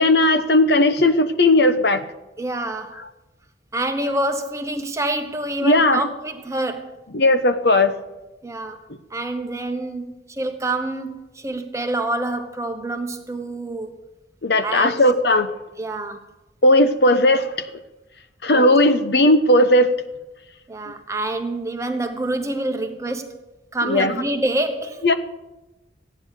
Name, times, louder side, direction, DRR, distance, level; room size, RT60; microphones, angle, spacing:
voice 1, 0.0-2.0 5.6-6.0 7.1-8.0 14.4-15.5 16.6-17.5 18.4-20.0 23.8-24.2 25.0-25.1, left 1 dB, 65° left, 9 dB, 1.0 m, -16 dB
voice 2, 2.4-3.0 3.7-7.0 8.4-8.8 9.1-14.0 14.6-15.0 15.8-16.2 18.5-18.7 20.7-23.3 23.7-25.0, right 2 dB, 15° right, 6 dB, 1.2 m, -27 dB
15.5 x 9.8 x 6.5 m, 1.0 s
head